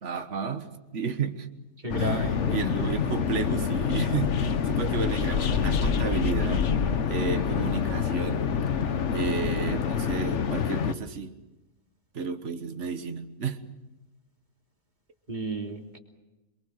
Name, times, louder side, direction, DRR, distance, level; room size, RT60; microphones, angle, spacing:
voice 1, 0.0-1.5 2.0-6.7 7.0-8.5 9.1-11.4 12.1-13.6, right 5 dB, 50° right, 8 dB, 1.7 m, -32 dB
voice 2, 1.8-2.8 15.3-16.0, right 2 dB, 30° right, 1 dB, 3.2 m, -33 dB
sound 1, 1.9-10.9, left 6 dB, 55° left, 1.2 m, -27 dB
sound 2, 3.0-9.8, left 5 dB, 70° left, 1.8 m, -39 dB
27.5 x 23.5 x 6.5 m, 1.0 s
omnidirectional pair, 1.6 m